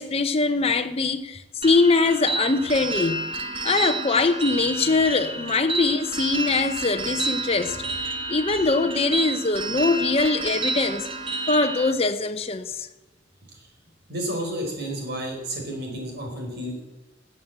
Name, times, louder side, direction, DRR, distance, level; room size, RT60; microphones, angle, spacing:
voice 1, 0.0-3.2 3.6-7.8 8.3-11.1 11.5-12.9, left 3 dB, 30° left, 0.8 m, -22 dB
sound 1, 1.6-11.9, right 3 dB, 30° right, 1.1 m, -30 dB
voice 2, 14.1-16.8, right 1 dB, 60° right, 4.5 m, -31 dB
13.5 x 7.6 x 8.8 m
head